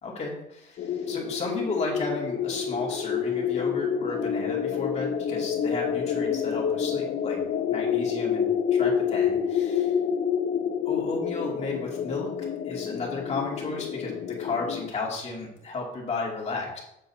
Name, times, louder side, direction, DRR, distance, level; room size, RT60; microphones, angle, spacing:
voice 1, 0.0-7.4 7.7-9.9 10.9-12.3 12.6-14.1 14.4-16.8, left 3 dB, 40° left, -2 dB, 2.6 m, -33 dB
sound 1, 0.8-14.9, left 7 dB, 60° left, 0.6 m, -28 dB
7.6 x 6.8 x 2.8 m, 0.85 s
cardioid pair, 110°, 17 cm